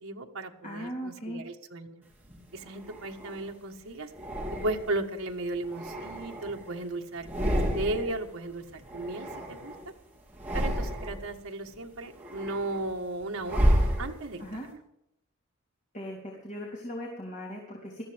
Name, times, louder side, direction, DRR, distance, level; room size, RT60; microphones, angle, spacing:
voice 1, 0.0-2.0 2.5-4.1 4.6-9.7 10.5-14.4, right 2 dB, 70° right, 3 dB, 1.6 m, -35 dB
voice 2, 0.6-1.4 14.4-14.7 15.9-18.0, equal, 35° left, -3 dB, 3.4 m, -38 dB
sound 1, 2.2-3.5 4.1-5.1 5.6-6.8 7.1-8.2 8.5-9.9 10.3-11.3 11.8-14.5, equal, 10° right, 3.5 m, -31 dB
21.0 x 14.0 x 3.6 m, 0.80 s
head